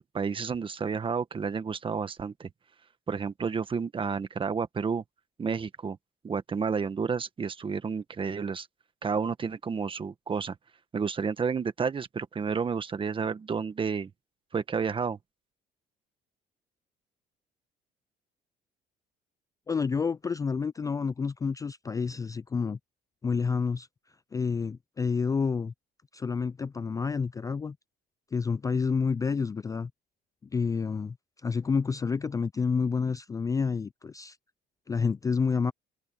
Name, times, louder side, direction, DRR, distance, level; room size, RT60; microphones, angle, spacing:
voice 1, 0.0-2.5 3.1-5.0 5.4-6.0 6.2-8.7 9.0-10.5 10.9-14.1 14.5-15.2, right 5 dB, 30° right, 1.5 m, -31 dB
voice 2, 19.7-22.8 23.2-23.9 24.3-25.7 26.1-27.8 28.3-29.9 30.5-31.2 31.4-34.4 34.9-35.7, left 5 dB, 20° left, 0.3 m, -29 dB
open air
cardioid pair, 110°, 17 cm